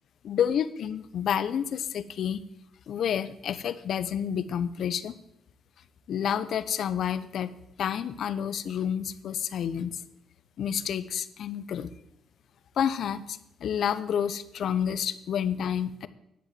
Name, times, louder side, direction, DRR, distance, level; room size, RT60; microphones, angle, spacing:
voice 1, 0.2-2.4 2.9-5.2 6.1-7.5 7.8-10.0 10.6-11.9 12.8-16.1, left 8 dB, 65° left, 14 dB, 0.8 m, -29 dB
11.0 x 7.9 x 7.6 m, 0.80 s
cardioid pair, 90°, 0 cm